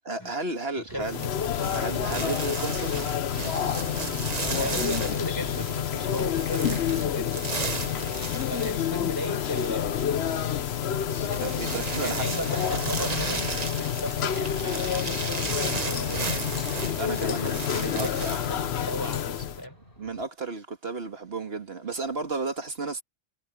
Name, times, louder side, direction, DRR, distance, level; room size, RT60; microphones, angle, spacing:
voice 1, 0.0-1.2 1.7-3.0 11.4-12.4 17.0-18.1 20.0-23.0, right 3 dB, 65° right, 2.2 m, -33 dB
voice 2, 0.8-1.5 4.6-7.5 8.5-10.5 12.0-16.5 17.1-19.8, equal, 20° left, 4.4 m, -37 dB
sound 1, 0.9-18.8, right 4 dB, 40° right, 1.3 m, -35 dB
sound 2, 1.0-19.6, left 9 dB, 75° left, 1.1 m, -29 dB
sound 3, 11.0-20.3, equal, 60° left, 8.0 m, -49 dB
omnidirectional pair, 1.1 m